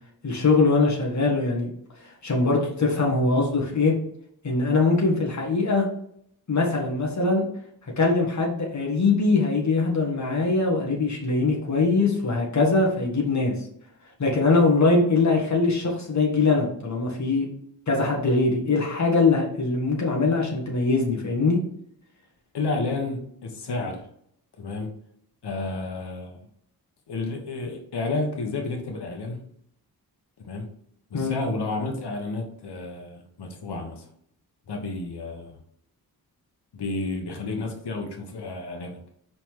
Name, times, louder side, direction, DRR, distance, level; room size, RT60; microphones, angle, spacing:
voice 1, 0.2-1.7 2.0-4.0 4.4-5.9 6.5-7.4 8.0-13.5 14.2-17.5 17.9-21.6 31.1-31.4, left 3 dB, 45° left, -1 dB, 1.7 m, -22 dB
voice 2, 22.5-24.1 24.6-24.9 25.4-26.4 27.1-29.5 30.4-30.7 31.1-34.1 34.7-35.6 36.7-39.0, left 3 dB, 85° left, 3 dB, 1.2 m, -31 dB
5.4 x 4.2 x 4.7 m, 0.67 s
wide cardioid pair, 160°, 39 cm